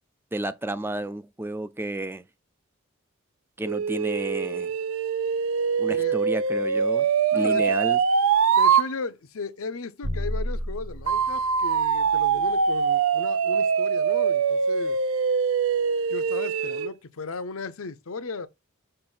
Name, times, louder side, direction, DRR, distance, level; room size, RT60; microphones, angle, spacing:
voice 1, 0.3-2.2 3.6-4.7 5.8-8.0, right 1 dB, 10° right, 0.4 m, -31 dB
sound 1, 3.6-8.9 11.1-16.9, right 6 dB, 75° right, 0.5 m, -23 dB
voice 2, 5.8-6.2 7.3-7.8 8.6-15.0 16.1-18.5, left 4 dB, 80° left, 0.7 m, -35 dB
sound 2, 10.0-12.5, equal, 60° right, 1.2 m, -33 dB
6.6 x 2.6 x 5.6 m
head